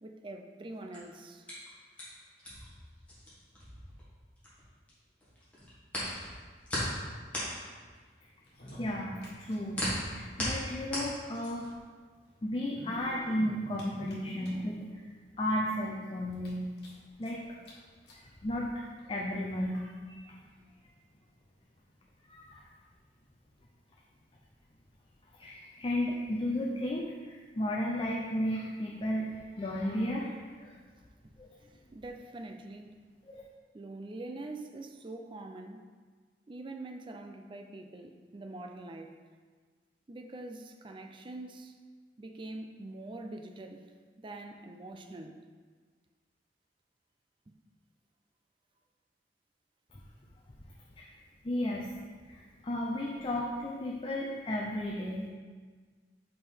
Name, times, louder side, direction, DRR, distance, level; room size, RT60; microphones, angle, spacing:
voice 1, 0.0-1.5 31.7-32.9 33.7-35.8 36.5-39.1 40.1-41.7 42.2-43.9 44.2-45.4, right 2 dB, 30° right, 4 dB, 0.4 m, -44 dB
sound 1, 0.7-4.9 5.2-11.8, left 1 dB, 10° left, 1.9 m, -38 dB
sound 2, 8.4-9.8 10.1-10.2 10.4-10.5 11.5-11.6 12.5-14.8 15.4-15.5 15.8-15.9 16.3-17.3 17.6-17.7 18.1-18.2 19.0-19.1, equal, 65° left, 1.6 m, -47 dB
voice 2, 8.8-11.7 12.4-15.1 15.4-16.7 17.2-17.7 18.1-20.4 22.3-22.7 25.4-29.3 29.6-30.3 30.6-30.8 31.4-31.5 33.2-33.4 49.9-50.0 51.0-51.1 51.4-51.9 52.3-55.3, left 1 dB, 30° left, -2 dB, 0.6 m, -34 dB
5.4 x 5.3 x 4.4 m, 1.5 s
head